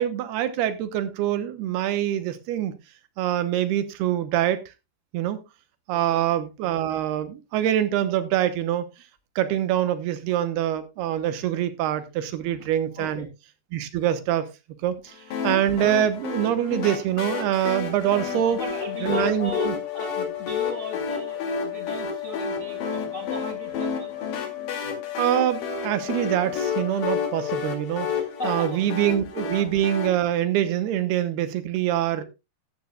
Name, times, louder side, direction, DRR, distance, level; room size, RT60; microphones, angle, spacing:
voice 1, 0.0-2.7 3.2-4.6 5.1-5.4 5.9-8.9 9.4-13.3 13.7-14.5 14.8-15.1 15.4-18.6 19.0-19.7 24.8-28.1 28.4-32.2, right 11 dB, 75° right, 2.9 m, -25 dB
voice 2, 5.9-6.2 12.4-12.7 13.0-13.3 18.1-19.7 19.9-24.1 28.4-28.8 32.2-32.3, left 1 dB, 40° left, 1.0 m, -38 dB
sound 1, 15.3-30.1, left 5 dB, 55° left, 3.7 m, -31 dB
sound 2, 17.9-27.7, left 16 dB, 90° left, 3.7 m, -35 dB
14.0 x 12.0 x 2.3 m
omnidirectional pair, 4.8 m